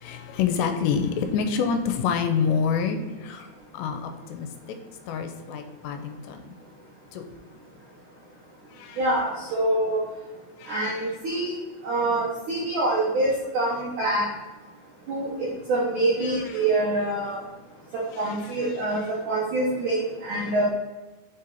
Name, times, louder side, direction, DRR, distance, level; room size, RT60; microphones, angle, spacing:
voice 1, 0.0-3.5 3.7-4.5 5.1-6.6 7.1-7.3 8.8-9.0 10.6-10.8 16.3-16.6 18.2-18.7, left 6 dB, 85° left, 6 dB, 2.6 m, -27 dB
voice 2, 9.0-10.0 10.7-11.5 11.8-14.3 15.1-17.4 17.9-20.7, right 2 dB, 90° right, -4 dB, 1.8 m, -25 dB
7.0 x 3.9 x 4.1 m, 1.3 s
omnidirectional pair, 5.1 m